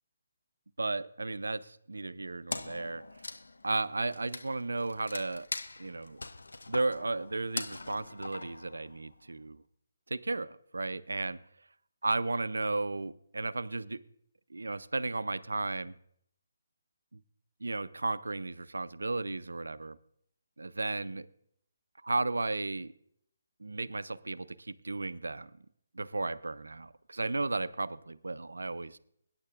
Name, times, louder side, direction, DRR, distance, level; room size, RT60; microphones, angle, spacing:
voice 1, 0.8-3.3 3.6-5.5 5.8-6.2 6.7-9.6 10.1-11.4 12.0-14.0 14.5-16.0 17.1-17.2 17.6-20.0 20.6-21.3 22.0-22.9 23.6-25.7 25.9-29.0, right 3 dB, 80° right, 15 dB, 0.5 m, -34 dB
Wood, 2.5-9.2, left 3 dB, 80° left, 0.6 m, -42 dB
21.0 x 9.6 x 2.4 m, 0.68 s
figure-of-eight pair, 150°, 0 cm